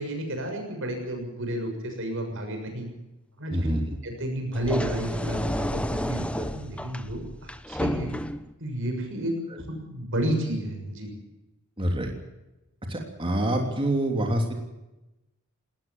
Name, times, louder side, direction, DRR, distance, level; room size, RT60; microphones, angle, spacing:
voice 1, 0.0-2.9 3.4-3.7 4.0-8.1 8.6-9.4 9.7-11.1, right 1 dB, 60° right, 4 dB, 6.8 m, -31 dB
voice 2, 3.5-3.8 11.8-12.1 12.9-14.5, right 1 dB, 25° right, 2 dB, 3.2 m, -26 dB
sound 1, 4.5-8.5, equal, 5° left, 0.9 m, -31 dB
20.5 x 19.0 x 7.3 m, 0.97 s
head